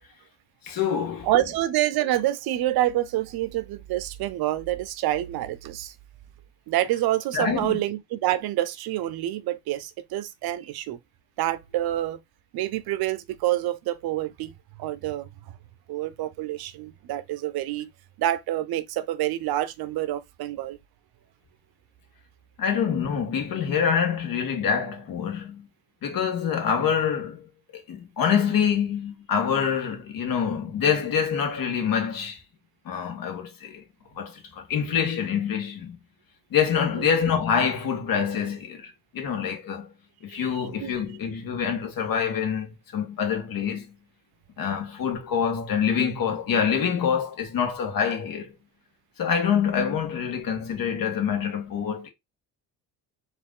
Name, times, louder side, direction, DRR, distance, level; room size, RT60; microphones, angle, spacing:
voice 1, 0.6-1.3 7.3-7.8 22.6-25.7 26.0-27.5 27.9-32.4 32.9-33.8 34.1-36.0 36.5-39.9 40.2-43.9 44.6-48.6 49.2-52.1, left 7 dB, 60° left, 1.8 m, -26 dB
voice 2, 1.2-5.9 6.7-11.0 11.4-12.2 12.5-14.5 14.8-15.3 15.9-17.9 18.2-20.8 37.0-37.1 40.3-41.0, right 14 dB, 70° right, 0.8 m, -27 dB
4.5 x 2.8 x 3.8 m
cardioid pair, 100°, 38 cm